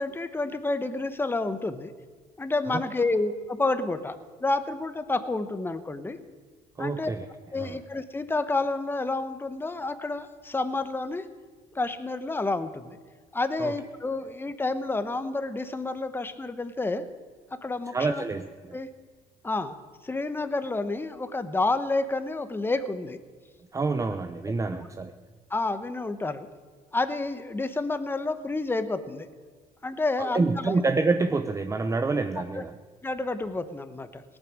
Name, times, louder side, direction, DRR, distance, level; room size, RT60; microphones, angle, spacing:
voice 1, 0.0-1.9 2.4-6.2 6.8-7.1 7.5-11.3 11.7-13.0 13.3-17.0 17.6-18.2 18.7-18.9 19.4-19.8 20.0-23.2 25.5-26.5 26.9-29.3 29.8-30.8 32.4-32.6 33.0-34.2, left 2 dB, 15° left, 10 dB, 0.9 m, -29 dB
voice 2, 6.8-7.3 7.6-7.8 13.6-13.7 17.9-18.7 23.7-25.1 30.2-32.7, right 3 dB, 20° right, 7 dB, 0.6 m, -27 dB
18.0 x 9.1 x 6.4 m, 1.5 s
cardioid pair, 95°, 17 cm